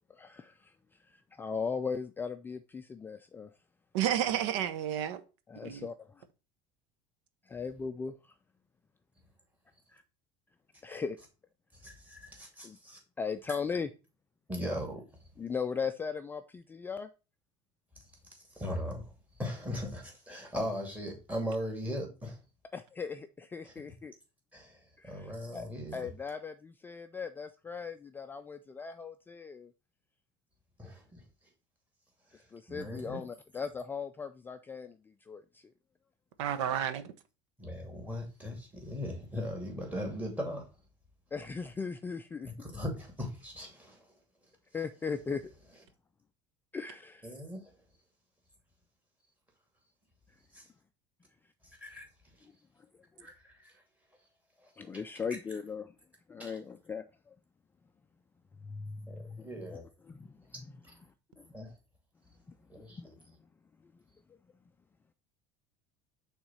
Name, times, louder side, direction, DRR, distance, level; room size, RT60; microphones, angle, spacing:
voice 1, 0.1-3.5 5.5-6.0 7.4-8.3 9.9-10.0 10.8-11.2 12.6-12.8 13.2-13.9 15.4-17.1 22.7-24.1 25.0-25.7 25.9-29.7 32.5-35.7 41.3-42.5 44.7-45.5 46.7-47.3 50.3-50.4 53.1-53.3 54.8-56.0 56.3-57.3 58.6-59.8 60.0-60.5 61.0-61.5 62.5-62.6 62.9-63.3 63.8-63.9, left 5 dB, 15° left, 0.3 m, -38 dB
voice 2, 3.9-5.2 5.6-5.8 36.4-37.0, right 10 dB, 85° right, 0.9 m, -30 dB
voice 3, 11.7-13.0 14.5-15.3 18.3-22.4 23.6-23.7 24.5-26.0 30.8-31.2 32.3-33.2 37.6-40.7 42.6-44.1 47.2-47.7 50.5-50.7 51.6-52.1 52.3-52.5 53.2-53.8 54.6-54.7 56.4-56.5 59.1-59.9 60.8-60.9 61.5-61.7 62.7-63.1, equal, 10° right, 2.2 m, -39 dB
5.9 x 3.7 x 5.5 m
cardioid pair, 140°, 15 cm